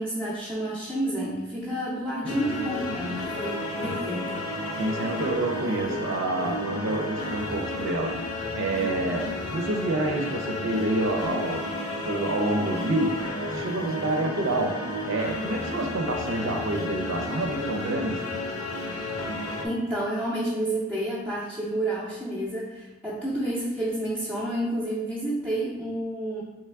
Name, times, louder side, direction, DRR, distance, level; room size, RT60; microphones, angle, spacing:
voice 1, 0.0-4.4 19.6-26.4, right 1 dB, 5° right, -8 dB, 0.6 m, -30 dB
sound 1, 2.3-19.7, left 2 dB, 85° left, 0.6 m, -32 dB
voice 2, 4.8-8.1 8.5-11.6 12.0-18.3, right 2 dB, 65° right, 2 dB, 0.5 m, -28 dB
3.4 x 3.1 x 3.4 m, 1.1 s
head